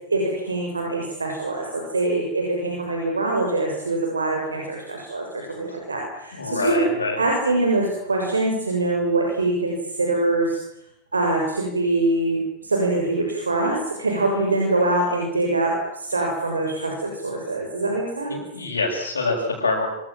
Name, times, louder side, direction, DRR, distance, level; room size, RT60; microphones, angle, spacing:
voice 1, 0.1-6.9 7.2-10.6 11.1-18.4, right 2 dB, 75° right, 1 dB, 6.9 m, -24 dB
voice 2, 6.3-7.2 18.3-19.9, left 3 dB, 70° left, -4 dB, 7.8 m, -25 dB
26.5 x 26.5 x 7.6 m, 0.81 s
figure-of-eight pair, 90°, 0 cm